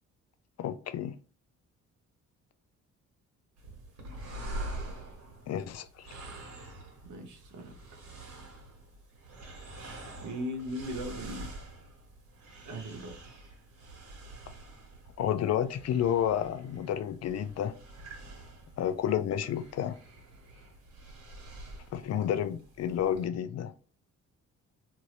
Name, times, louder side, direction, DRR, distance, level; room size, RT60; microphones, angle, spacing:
voice 1, 0.6-1.1 5.5-6.1 15.2-17.7 18.8-20.0 21.9-23.7, left 10 dB, 55° left, 0.4 m, -30 dB
sound 1, 3.6-23.3, right 1 dB, 55° right, 1.5 m, -46 dB
voice 2, 7.0-7.7 10.2-11.5 12.6-13.3, equal, 75° right, 1.0 m, -38 dB
2.7 x 2.7 x 3.0 m
cardioid pair, 90°, 30 cm